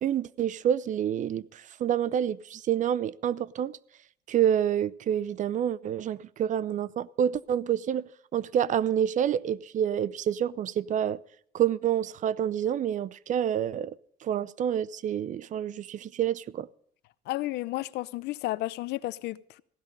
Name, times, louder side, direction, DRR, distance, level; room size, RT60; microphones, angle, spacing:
voice 1, 0.0-3.8 4.3-11.2 11.5-13.9 14.2-16.7, right 9 dB, 50° right, 0.5 m, -28 dB
voice 2, 17.3-19.6, left 17 dB, 80° left, 0.6 m, -32 dB
15.5 x 12.5 x 5.3 m
cardioid pair, 110°, 17 cm